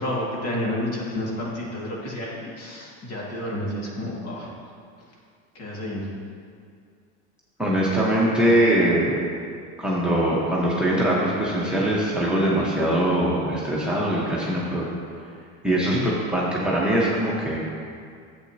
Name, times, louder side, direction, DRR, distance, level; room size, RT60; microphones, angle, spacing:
voice 1, 0.0-4.5 5.6-6.1 15.8-16.0, left 1 dB, 45° left, -4 dB, 2.2 m, -30 dB
voice 2, 7.6-9.2 9.8-14.9 15.6-17.6, right 1 dB, 5° right, -6 dB, 1.2 m, -22 dB
10.5 x 7.9 x 2.9 m, 2.2 s
supercardioid pair, 130°, 35 cm